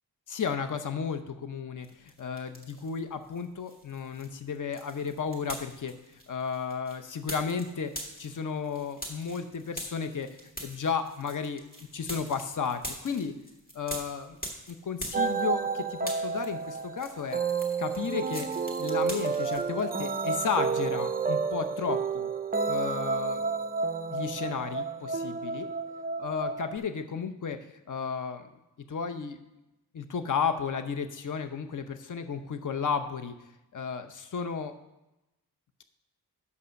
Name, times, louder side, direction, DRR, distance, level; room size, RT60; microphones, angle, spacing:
voice 1, 0.3-7.9 8.2-10.3 10.6-11.6 11.9-13.3 13.7-14.4 14.7-17.4 17.8-22.3 22.7-23.5 24.1-25.7 26.2-28.5 28.9-29.4 29.9-33.3 33.7-34.7, left 6 dB, 50° left, 8 dB, 0.8 m, -33 dB
sound 1, 1.8-3.0 3.3-15.7 16.0-19.9, equal, 20° left, 1.9 m, -43 dB
sound 2, 15.1-26.8, right 5 dB, 25° right, 0.3 m, -30 dB
8.2 x 5.5 x 6.3 m, 0.95 s
wide cardioid pair, 95°, 39 cm